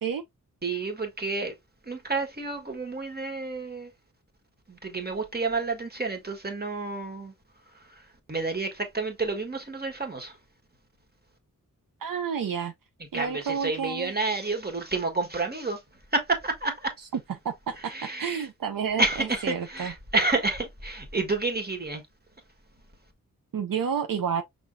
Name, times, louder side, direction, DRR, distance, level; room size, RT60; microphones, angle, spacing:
voice 1, 0.6-1.5 1.9-3.9 4.7-7.3 8.3-10.3 13.1-15.8 16.1-16.9 17.9-18.4 19.0-22.0, right 3 dB, 30° right, 1.6 m, -29 dB
voice 2, 12.0-12.7 13.1-14.1 17.0-19.9 23.5-24.4, right 7 dB, 80° right, 0.6 m, -30 dB
5.7 x 3.6 x 2.6 m
wide cardioid pair, 85°, 33 cm